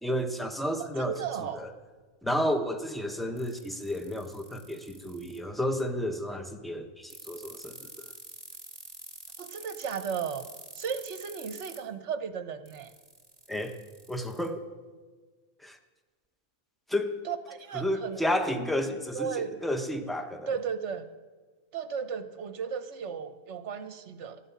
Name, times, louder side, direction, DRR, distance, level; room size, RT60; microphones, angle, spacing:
voice 1, 0.0-1.1 1.5-1.7 2.2-7.8 13.5-13.8 14.1-14.6 15.6-15.8 16.9-17.2 17.7-20.5, left 1 dB, ahead, 6 dB, 0.9 m, -31 dB
voice 2, 0.8-1.6 9.4-10.4 10.7-12.9 17.2-18.2 19.1-19.6 20.5-21.1 21.7-24.5, right 7 dB, 65° right, 11 dB, 1.2 m, -35 dB
sound 1, 3.4-5.4 7.1-11.8 12.7-14.5, right 3 dB, 30° right, 1.7 m, -46 dB
13.0 x 9.5 x 8.4 m, 1.4 s
omnidirectional pair, 1.3 m